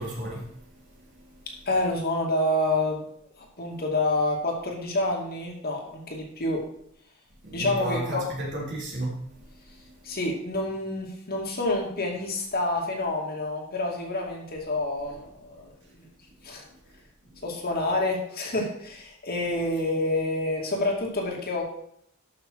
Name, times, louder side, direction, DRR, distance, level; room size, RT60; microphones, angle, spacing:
voice 1, 0.0-1.4 7.4-10.2 15.8-15.9 16.2-16.3 16.7-16.8 17.3-17.4, right 1 dB, 60° right, -4 dB, 4.1 m, -35 dB
voice 2, 1.7-3.1 3.4-6.6 7.5-8.2 10.0-15.7 16.0-16.1 16.4-16.6 17.4-21.6, left 2 dB, 50° left, 0 dB, 2.4 m, -28 dB
12.5 x 6.2 x 4.7 m, 0.70 s
head